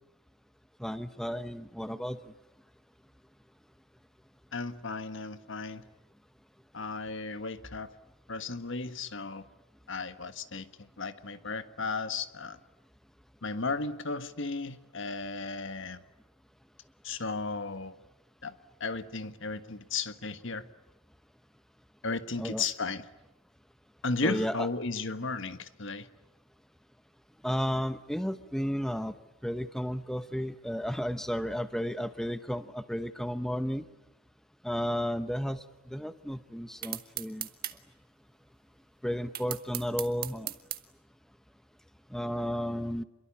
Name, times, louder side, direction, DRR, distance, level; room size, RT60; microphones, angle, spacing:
voice 1, 0.8-2.2 22.4-22.6 24.2-24.7 27.4-29.1 29.4-33.8 34.6-37.5 39.0-40.5 42.1-43.0, equal, ahead, 11 dB, 0.9 m, -33 dB
voice 2, 4.5-5.8 6.7-7.9 8.3-9.5 9.9-10.7 11.0-12.6 13.4-16.0 17.0-18.0 18.4-18.5 18.8-20.6 22.0-23.1 24.0-26.1, left 3 dB, 60° left, 11 dB, 1.5 m, -35 dB
sound 1, 36.8-37.8 39.3-40.8, right 13 dB, 45° right, 1.6 m, -36 dB
28.5 x 22.5 x 8.6 m, 0.96 s
head